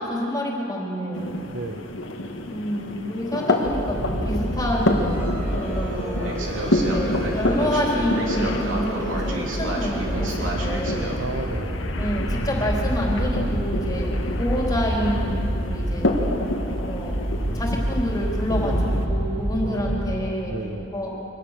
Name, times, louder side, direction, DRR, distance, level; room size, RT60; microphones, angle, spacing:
voice 1, 0.0-1.4 2.5-5.1 5.5-6.3 6.8-11.1 12.0-14.1 14.4-15.4 15.6-16.2 16.9-17.2 17.5-20.5 20.9-21.1, equal, 20° left, -2 dB, 3.5 m, -28 dB
sound 1, 1.1-19.1, left 1 dB, 80° left, 1.7 m, -29 dB
voice 2, 1.5-2.0 11.1-11.8 19.6-20.9, right 2 dB, 65° right, 6 dB, 1.0 m, -34 dB
sound 2, 3.6-20.2, right 1 dB, 85° right, 3.2 m, -27 dB
sound 3, 4.8-17.3, equal, 20° right, 6.5 m, -38 dB
24.0 x 18.0 x 6.6 m, 2.8 s
head